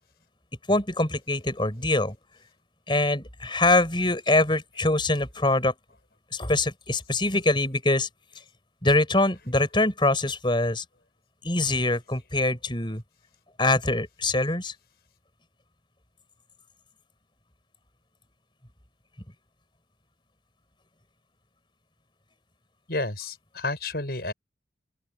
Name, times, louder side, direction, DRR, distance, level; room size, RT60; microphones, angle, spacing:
voice 1, 0.7-2.2 2.9-5.7 6.3-8.1 8.8-10.8 11.4-13.0 13.6-14.7, left 2 dB, 25° left, 5.8 m, -24 dB
voice 2, 22.9-24.3, left 2 dB, 60° left, 7.5 m, -30 dB
open air
head